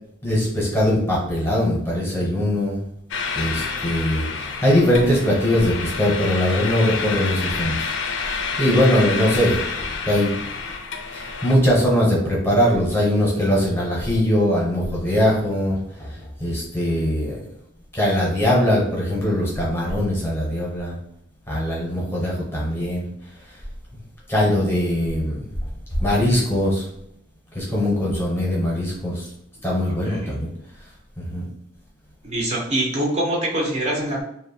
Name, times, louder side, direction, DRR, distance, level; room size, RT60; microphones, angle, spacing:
voice 1, 0.2-2.8 3.3-7.9 8.6-9.6 10.0-10.3 11.1-17.4 17.9-20.9 21.5-23.1 24.3-25.4 26.0-26.8 27.5-29.3 29.6-30.5 31.2-31.4, equal, 10° left, -5 dB, 0.7 m, -21 dB
sound 1, 3.1-11.6, left 5 dB, 70° left, 0.4 m, -29 dB
voice 2, 29.8-30.3 32.2-34.2, right 1 dB, 35° right, -2 dB, 0.5 m, -25 dB
2.6 x 2.1 x 2.6 m, 0.75 s
head